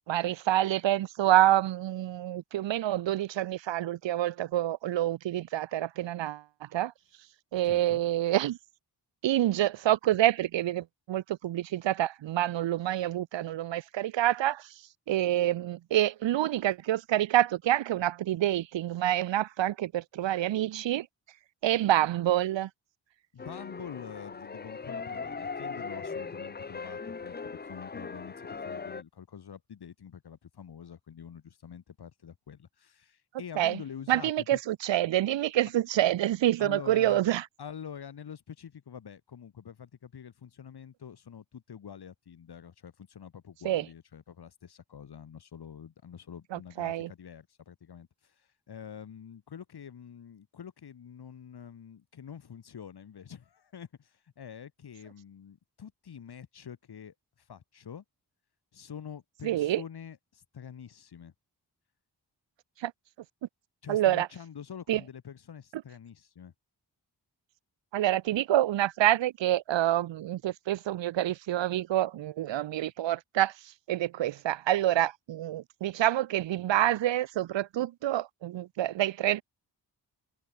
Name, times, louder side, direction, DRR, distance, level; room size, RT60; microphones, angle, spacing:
voice 1, 0.1-6.9 7.5-8.6 9.2-14.7 15.1-21.1 21.6-22.7 33.6-33.8 34.1-37.4 43.6-43.9 46.5-47.1 59.4-59.8 62.8-62.9 63.9-64.3 64.9-65.0 67.9-73.5 73.9-79.4, right 13 dB, 80° right, 0.6 m, -27 dB
voice 2, 7.6-8.0 23.3-34.6 36.6-37.3 37.6-58.0 58.7-61.3 63.8-66.5, left 8 dB, 60° left, 1.3 m, -46 dB
sound 1, 23.4-29.0, left 5 dB, 25° left, 0.6 m, -39 dB
cardioid pair, 70°, 44 cm